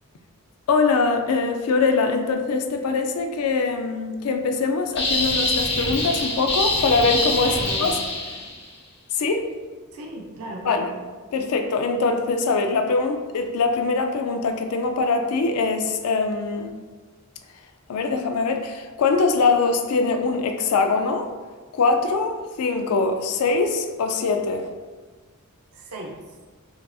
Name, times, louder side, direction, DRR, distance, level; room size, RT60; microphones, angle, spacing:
voice 1, 0.7-8.0 9.1-9.5 10.6-10.9 11.3-16.7 17.9-21.3 21.7-24.7, left 4 dB, 85° left, 5 dB, 0.4 m, -22 dB
sound 1, 5.0-8.6, left 2 dB, 50° left, 1.0 m, -24 dB
voice 2, 7.4-8.0 9.9-10.9 25.7-26.2, right 1 dB, 80° right, 0 dB, 0.5 m, -36 dB
5.1 x 2.5 x 2.3 m, 1.4 s
head